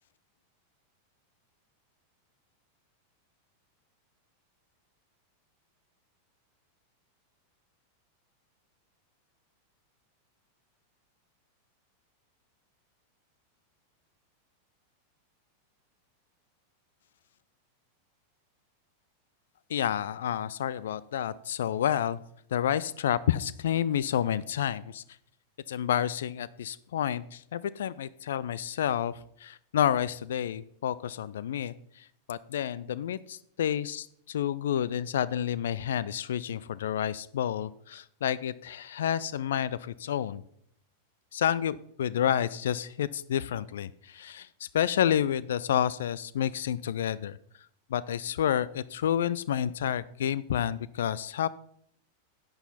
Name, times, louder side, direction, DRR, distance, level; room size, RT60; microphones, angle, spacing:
voice 1, 19.7-22.2 22.5-25.0 25.7-40.4 41.3-47.4 47.9-51.5, left 10 dB, 60° left, 19 dB, 0.3 m, -30 dB
11.0 x 7.9 x 4.1 m, 0.69 s
figure-of-eight pair, 90°, 0 cm